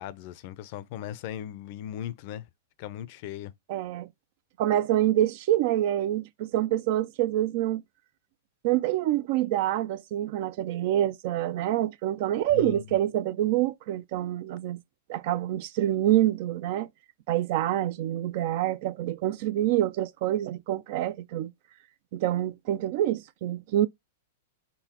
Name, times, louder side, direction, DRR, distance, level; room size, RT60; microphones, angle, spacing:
voice 1, 0.0-2.5 2.8-3.5 12.5-12.8, left 11 dB, 55° left, 0.4 m, -38 dB
voice 2, 3.7-4.1 4.6-7.8 8.6-14.8 15.1-16.9 17.3-21.5 22.1-23.9, right 13 dB, 55° right, 0.3 m, -26 dB
4.0 x 3.7 x 2.8 m
hypercardioid pair, 115°, 0 cm